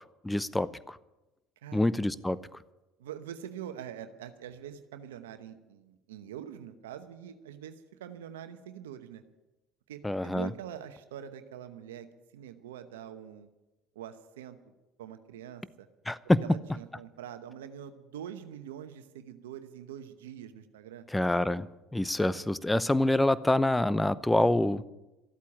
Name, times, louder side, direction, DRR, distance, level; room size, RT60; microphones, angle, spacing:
voice 1, 0.2-1.0 1.7-2.4 10.0-10.5 16.1-16.4 21.1-24.8, left 1 dB, 10° left, 17 dB, 0.7 m, -26 dB
voice 2, 3.0-9.2 9.9-12.1 12.3-13.5 13.9-14.6 15.0-15.9 16.4-21.1, right 9 dB, 90° right, 9 dB, 0.9 m, -44 dB
14.0 x 8.4 x 9.8 m, 1.0 s
hypercardioid pair, 75°, 0 cm